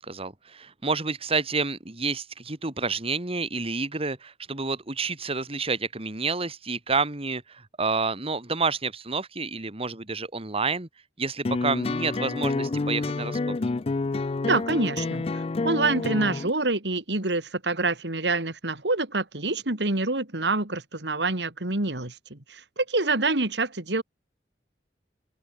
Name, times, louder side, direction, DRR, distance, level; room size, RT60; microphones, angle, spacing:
voice 1, 0.0-10.9 11.2-13.6, right 4 dB, 35° right, 2.2 m, -29 dB
sound 1, 11.4-16.5, left 3 dB, 35° left, 0.4 m, -28 dB
voice 2, 14.4-24.0, right 3 dB, 80° right, 3.0 m, -26 dB
open air
head